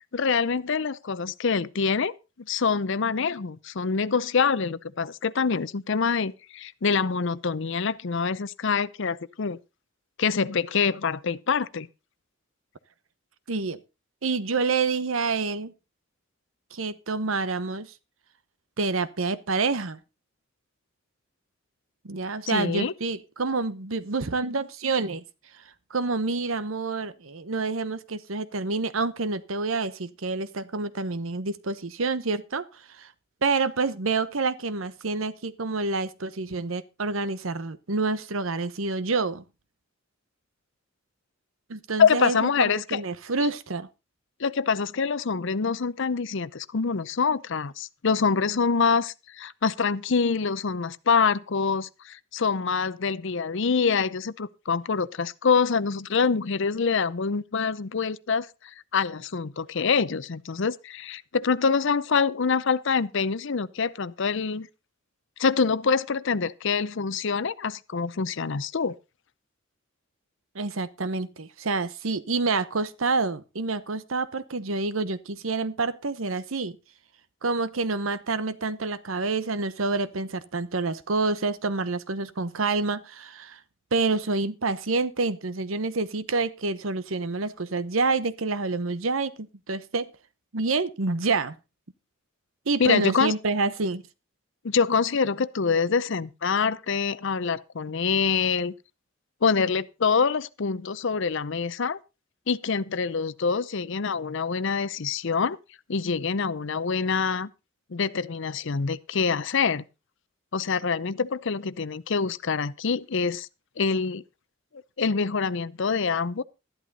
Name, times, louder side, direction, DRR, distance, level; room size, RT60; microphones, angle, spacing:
voice 1, 0.1-9.6 10.2-11.9 22.5-22.9 42.0-43.0 43.4-43.5 44.4-58.5 58.9-64.7 65.4-69.0 92.8-93.3 94.6-98.7 99.4-102.0 102.5-105.6 105.9-107.5 107.9-109.8 110.5-113.5 113.8-114.2 115.0-116.4, left 5 dB, 65° left, 0.7 m, -25 dB
voice 2, 13.5-13.8 14.2-15.7 16.7-17.9 18.8-20.0 22.0-25.2 25.9-33.1 33.4-39.4 41.7-43.9 70.5-76.8 77.4-83.6 83.9-90.1 90.5-91.6 92.7-94.0, right 3 dB, 85° right, 1.0 m, -28 dB
12.5 x 11.5 x 4.0 m
head